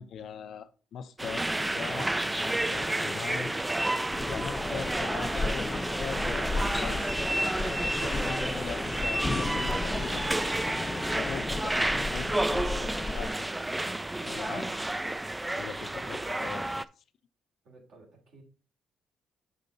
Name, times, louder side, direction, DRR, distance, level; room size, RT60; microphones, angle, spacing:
voice 1, 0.0-3.5 3.9-7.2 7.6-13.5 14.2-14.9 15.6-16.8, left 7 dB, 65° left, 0.6 m, -41 dB
sound 1, 1.2-16.8, right 1 dB, 10° right, 0.3 m, -30 dB
sound 2, 4.1-13.3, left 3 dB, 25° left, 0.7 m, -35 dB
voice 2, 15.8-16.3 17.6-18.4, right 3 dB, 70° right, 3.1 m, -53 dB
6.6 x 5.1 x 4.0 m
cardioid pair, 90°, 0 cm